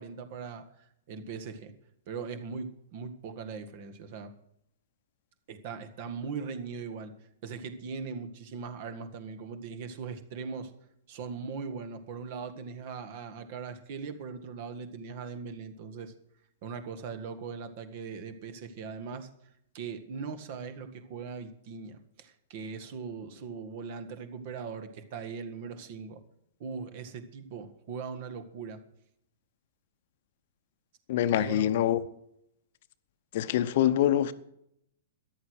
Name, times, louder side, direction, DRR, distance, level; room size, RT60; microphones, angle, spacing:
voice 1, 0.0-1.7 2.1-4.3 5.5-7.1 7.4-10.7 11.1-16.1 16.6-19.3 19.7-26.2 26.6-28.8 31.3-31.7, right 5 dB, 45° right, 9 dB, 1.8 m, -40 dB
voice 2, 31.1-32.0 33.3-34.3, left 12 dB, 50° left, 14 dB, 0.8 m, -25 dB
14.0 x 10.5 x 6.4 m, 0.76 s
figure-of-eight pair, 110°, 0 cm